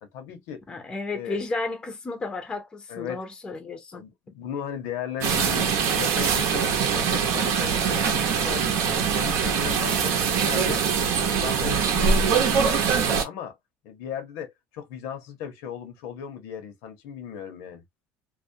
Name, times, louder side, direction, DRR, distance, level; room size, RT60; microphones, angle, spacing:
voice 1, 0.0-0.6 1.1-1.4 2.9-3.2 3.9-10.9 11.1-13.6 13.8-17.8, left 8 dB, 85° left, 0.8 m, -36 dB
voice 2, 0.7-4.0, left 3 dB, 15° left, 0.5 m, -33 dB
sound 1, 5.2-13.2, right 6 dB, 65° right, 0.7 m, -23 dB
2.4 x 2.0 x 2.6 m
cardioid pair, 155°, 5 cm